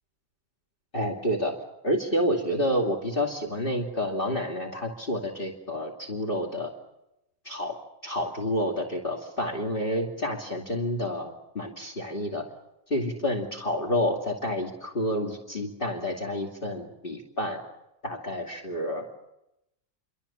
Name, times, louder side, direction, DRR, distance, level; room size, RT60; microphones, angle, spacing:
voice 1, 0.9-1.6 1.8-6.7 7.4-7.8 8.0-12.4 12.9-17.6 18.0-19.0, equal, 35° left, 1 dB, 2.9 m, -29 dB
27.5 x 25.0 x 7.2 m, 0.87 s
omnidirectional pair, 1.5 m